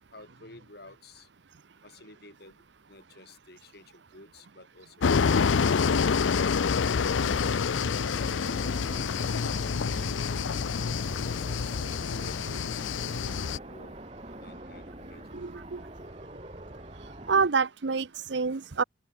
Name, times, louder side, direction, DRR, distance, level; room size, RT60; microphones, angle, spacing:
voice 1, 0.1-1.3 1.8-5.6 8.2-9.1 9.9-10.5 11.1-14.0 14.4-15.4, left 2 dB, 55° left, 5.7 m, -51 dB
sound 1, 5.0-13.6, left 5 dB, 85° left, 0.5 m, -27 dB
sound 2, 7.2-17.5, right 1 dB, 30° right, 4.1 m, -45 dB
voice 2, 15.3-15.8 17.3-18.8, right 5 dB, 70° right, 0.7 m, -27 dB
open air
head